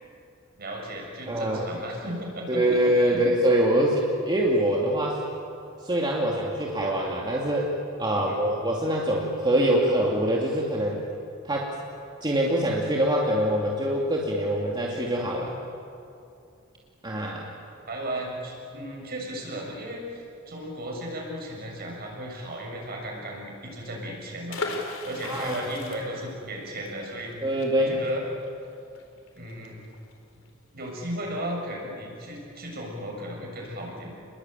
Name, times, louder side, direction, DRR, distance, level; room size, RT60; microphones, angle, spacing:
voice 1, 0.6-2.8 3.1-3.3 8.1-8.4 17.9-27.3 27.7-28.2 29.4-29.8 30.7-34.1, right 1 dB, 50° right, -1 dB, 7.3 m, -35 dB
voice 2, 1.3-1.7 2.5-5.2 5.8-11.0 11.4-11.8 12.2-15.5 17.0-17.5 25.2-25.6 27.4-28.0, right 1 dB, 20° right, -3 dB, 2.6 m, -24 dB
sound 1, 24.5-30.1 30.4-30.5 30.8-31.1, left 2 dB, 80° left, 4.3 m, -37 dB
29.5 x 21.5 x 9.2 m, 2.6 s
head